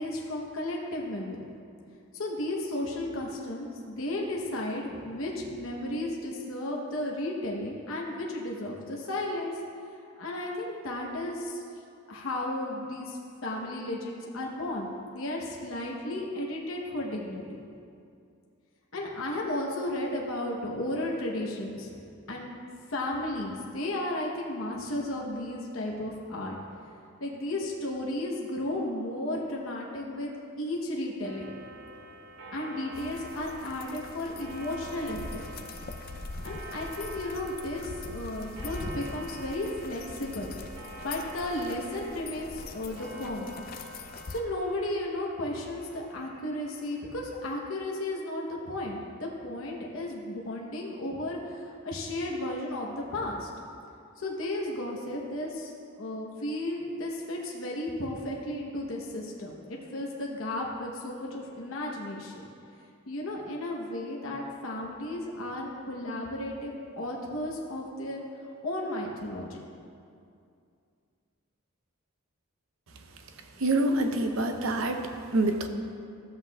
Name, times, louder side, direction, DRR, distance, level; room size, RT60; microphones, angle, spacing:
voice 1, 0.0-1.4 2.1-9.5 10.2-11.6 12.1-17.6 18.9-22.0 22.3-22.6 22.9-26.6 27.2-30.3 30.6-31.5 32.5-35.4 36.4-40.6 41.0-43.5 44.3-53.5 54.2-62.4 63.1-68.2 68.6-69.6, left 1 dB, 65° left, -2 dB, 0.9 m, -34 dB
Clock, 31.2-47.4, right 1 dB, 85° right, 2.1 m, -46 dB
sound 1, 32.9-44.4, left 3 dB, 45° left, 0.4 m, -43 dB
voice 2, 73.6-75.7, right 2 dB, 65° right, 5 dB, 0.7 m, -26 dB
13.0 x 7.8 x 2.3 m, 2.5 s
head